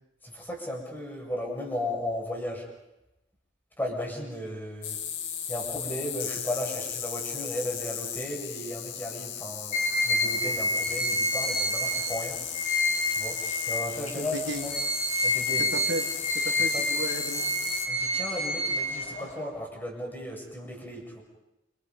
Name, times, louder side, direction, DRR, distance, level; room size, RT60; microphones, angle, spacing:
voice 1, 0.2-2.6 3.8-5.0 5.5-9.7 10.0-12.4 13.1-13.4 13.7-14.8 15.2-15.7 16.7-16.9 17.9-21.2, left 1 dB, 10° left, 0 dB, 7.8 m, -35 dB
sound 1, 4.8-17.9, left 8 dB, 75° left, 2.7 m, -36 dB
sound 2, 9.7-14.1 14.5-19.4, left 1 dB, 40° left, 7.4 m, -28 dB
voice 2, 14.1-14.7 15.6-17.5, right 1 dB, 75° right, 3 dB, 2.8 m, -35 dB
29.5 x 28.0 x 5.6 m, 0.91 s
head